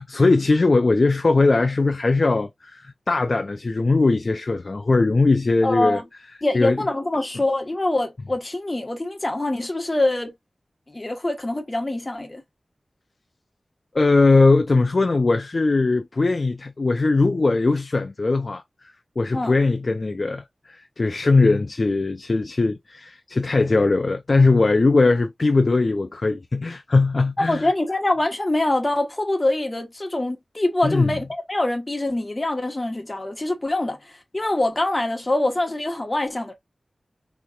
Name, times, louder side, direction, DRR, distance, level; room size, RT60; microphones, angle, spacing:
voice 1, 0.0-6.0 6.5-6.8 13.9-18.6 19.2-27.7 30.8-31.1, left 3 dB, 55° left, 0.5 m, -20 dB
voice 2, 5.6-6.0 6.4-10.3 10.9-12.4 19.3-19.5 27.5-34.0 34.3-36.5, left 2 dB, 30° left, 1.2 m, -24 dB
4.0 x 3.0 x 2.4 m
wide cardioid pair, 60°, 0 cm